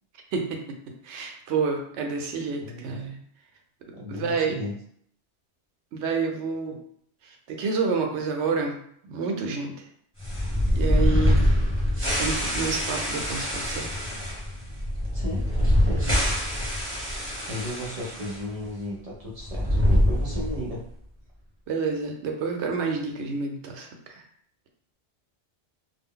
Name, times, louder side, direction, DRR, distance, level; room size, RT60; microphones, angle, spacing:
voice 1, 0.3-0.6 1.0-3.2 4.1-4.6 5.9-6.8 7.2-8.8 9.1-9.9 10.7-11.4 12.2-13.9 21.7-24.2, right 4 dB, 90° right, 2 dB, 0.9 m, -29 dB
voice 2, 2.6-3.0 3.9-4.8 15.1-16.2 17.4-20.8, left 1 dB, 45° right, -5 dB, 0.5 m, -35 dB
sound 1, 10.2-18.4 18.7-18.8 19.4-20.8, left 1 dB, 10° right, 1.0 m, -24 dB
2.2 x 2.0 x 3.5 m, 0.67 s
omnidirectional pair, 1.1 m